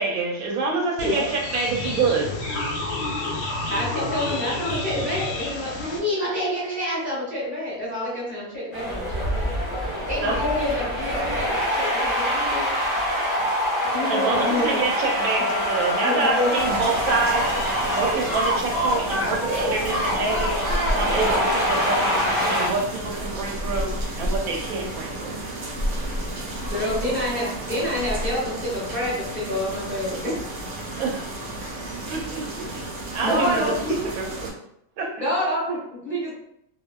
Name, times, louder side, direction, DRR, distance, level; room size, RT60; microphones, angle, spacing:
voice 1, 0.0-2.3 10.2-10.4 14.1-17.5 17.9-20.6 20.9-25.3 31.0-31.3 32.1-32.8 33.1-33.7 34.2-34.5 35.0-35.1, right 4 dB, 85° right, 0 dB, 1.1 m, -26 dB
sound 1, 1.0-6.0, left 2 dB, 85° left, 1.1 m, -30 dB
voice 2, 3.1-3.9 9.5-10.1 26.5-27.2, left 2 dB, 45° left, -9 dB, 0.5 m, -44 dB
voice 3, 3.7-9.5 10.1-12.7 13.9-14.8 16.0-16.7 26.7-30.3 33.2-33.9 35.1-36.3, left 1 dB, 5° right, -8 dB, 1.3 m, -27 dB
sound 2, 8.7-22.7, equal, 25° right, 1.0 m, -25 dB
sound 3, 16.5-34.5, right 1 dB, 65° right, 0.9 m, -32 dB
2.7 x 2.4 x 2.2 m, 0.76 s
omnidirectional pair, 1.5 m